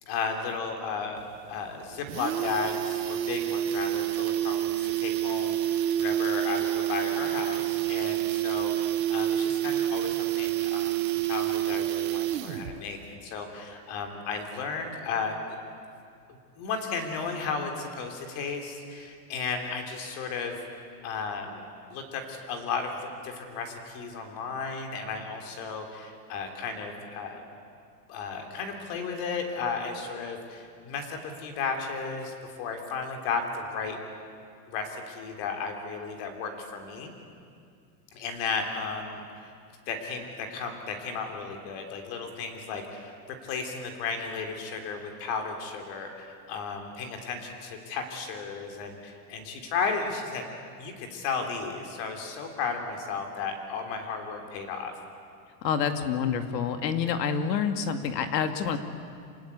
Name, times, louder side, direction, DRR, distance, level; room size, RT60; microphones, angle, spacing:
voice 1, 0.0-15.3 16.3-20.6 21.0-27.4 28.1-34.0 34.7-37.1 38.1-39.2 39.9-50.5 50.8-54.9, left 5 dB, 35° left, 4 dB, 3.4 m, -34 dB
sound 1, 1.2-1.3 1.6-1.7 1.9-12.8 13.1-13.2, right 13 dB, 80° right, 1.6 m, -28 dB
voice 2, 55.6-58.8, left 7 dB, 85° left, 7 dB, 2.3 m, -27 dB
27.5 x 19.0 x 8.3 m, 2.3 s
supercardioid pair, 170°, 49 cm